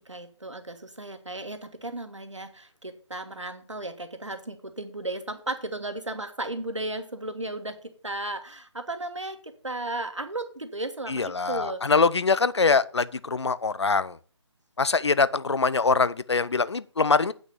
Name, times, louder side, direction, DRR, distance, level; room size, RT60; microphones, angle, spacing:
voice 1, 0.1-11.9, right 2 dB, 80° right, 1.7 m, -35 dB
voice 2, 11.1-14.2 14.8-17.3, left 4 dB, 65° left, 0.6 m, -23 dB
8.8 x 6.1 x 6.7 m
figure-of-eight pair, 150°, 15 cm